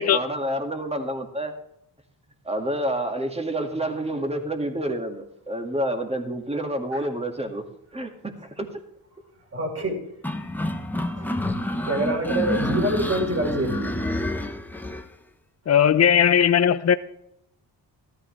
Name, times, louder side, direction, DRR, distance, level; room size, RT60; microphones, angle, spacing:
voice 1, 0.1-1.5 2.4-7.6 7.9-8.7, right 1 dB, 15° right, 2.0 m, -28 dB
voice 2, 9.5-10.1 11.2-11.5 11.9-14.0, right 1 dB, 35° right, 4.5 m, -26 dB
sound 1, 10.2-15.0, left 1 dB, 5° left, 1.1 m, -28 dB
voice 3, 15.7-16.9, left 9 dB, 35° left, 0.7 m, -18 dB
14.0 x 13.0 x 3.3 m
cardioid pair, 85°, 44 cm